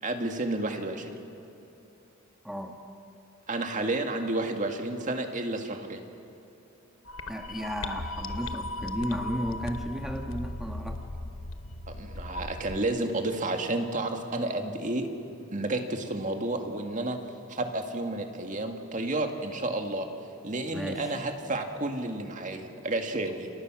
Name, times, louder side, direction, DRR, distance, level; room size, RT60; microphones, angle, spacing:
voice 1, 0.0-1.1 3.5-6.0 11.9-15.1 15.5-17.2 17.5-20.1 20.4-23.5, right 2 dB, 40° right, 4 dB, 2.1 m, -31 dB
voice 2, 2.4-2.8 7.3-11.0 20.7-21.1, equal, ahead, 2 dB, 1.4 m, -34 dB
sound 1, 7.0-12.8, left 1 dB, 75° left, 1.1 m, -37 dB
29.5 x 27.5 x 6.3 m, 3.0 s
head